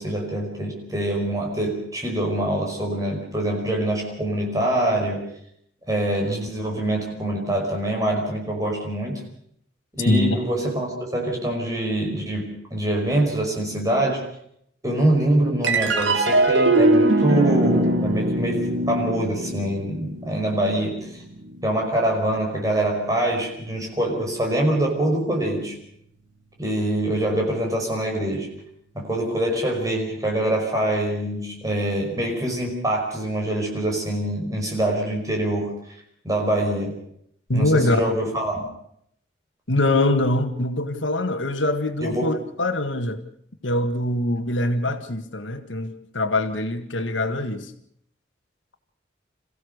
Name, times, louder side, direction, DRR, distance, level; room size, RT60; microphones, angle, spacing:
voice 1, 0.0-5.2 5.9-9.2 9.9-14.2 14.8-21.2 21.6-25.8 26.6-28.5 28.9-36.0 36.2-36.9 37.5-38.6 42.0-42.3, right 1 dB, 20° right, 0 dB, 5.5 m, -24 dB
sound 1, 15.6-22.3, right 2 dB, 80° right, 2.3 m, -22 dB
voice 2, 37.5-38.1 39.7-43.2 43.6-47.7, left 1 dB, 80° left, 7 dB, 1.8 m, -23 dB
27.5 x 15.5 x 6.7 m, 0.69 s
head